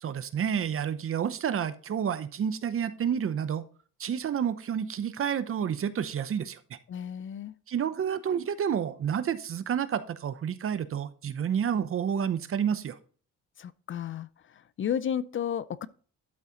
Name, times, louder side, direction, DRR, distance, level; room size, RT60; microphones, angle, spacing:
voice 1, 0.0-3.6 4.0-6.6 7.7-13.0, right 8 dB, 45° right, 0.7 m, -29 dB
voice 2, 6.9-7.5 13.6-14.3 14.8-15.9, left 9 dB, 40° left, 0.4 m, -32 dB
12.0 x 4.1 x 3.8 m
cardioid pair, 90°, 30 cm